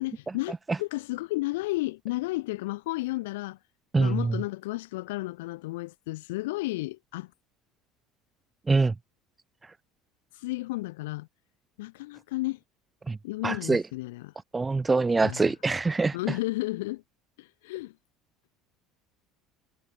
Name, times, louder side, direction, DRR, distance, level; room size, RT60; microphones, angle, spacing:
voice 1, 0.0-3.6 4.0-7.3 10.3-11.3 11.8-12.6 13.2-14.3 15.2-15.5 16.1-17.0 17.4-17.9, left 20 dB, 80° left, 6.0 m, -32 dB
voice 2, 3.9-4.4 8.7-8.9 13.1-13.2 13.4-13.8 14.5-16.2, right 3 dB, 20° right, 1.2 m, -24 dB
hypercardioid pair, 80°, 0 cm